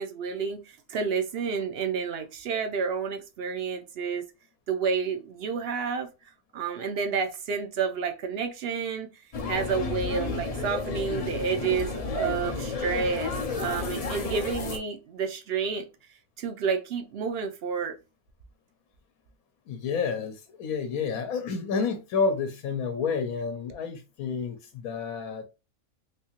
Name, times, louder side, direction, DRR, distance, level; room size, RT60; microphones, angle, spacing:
voice 1, 0.0-4.2 4.7-6.1 6.5-9.1 9.5-15.9 16.4-18.0, right 5 dB, 60° right, 0.6 m, -30 dB
sound 1, 9.3-14.8, left 3 dB, 55° left, 0.4 m, -32 dB
voice 2, 19.7-25.4, left 5 dB, 80° left, 1.1 m, -30 dB
3.5 x 2.7 x 2.9 m
omnidirectional pair, 1.5 m